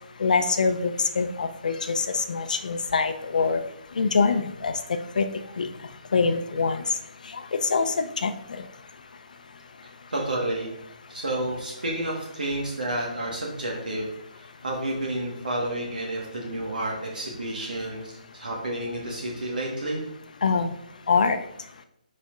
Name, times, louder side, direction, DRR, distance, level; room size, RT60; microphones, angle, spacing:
voice 1, 0.2-3.6 4.0-4.7 5.2-5.3 5.6-5.7 6.1-6.8 7.3-8.3 20.4-20.7 21.1-21.4, left 4 dB, 65° left, 8 dB, 0.6 m, -24 dB
voice 2, 9.8-10.7 11.1-14.1 14.3-20.0, right 1 dB, 85° right, -2 dB, 1.5 m, -30 dB
10.0 x 4.2 x 2.5 m, 0.83 s
hypercardioid pair, 150°, 5 cm